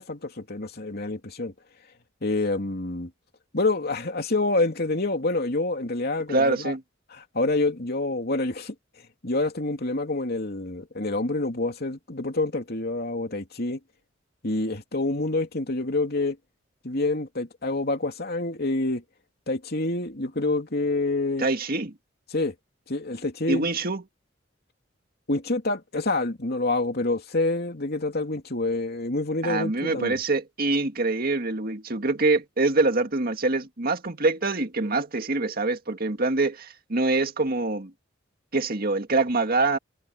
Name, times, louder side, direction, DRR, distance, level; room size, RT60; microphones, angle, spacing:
voice 1, 0.0-1.5 2.2-3.1 3.5-6.7 7.1-8.7 9.2-13.8 14.4-16.4 16.8-19.0 19.5-21.5 22.3-22.5 22.9-23.7 25.3-30.2, left 2 dB, 55° left, 3.0 m, -27 dB
voice 2, 6.3-6.8 21.4-21.9 23.5-24.0 29.4-37.9 38.5-39.8, right 3 dB, 50° right, 1.9 m, -25 dB
head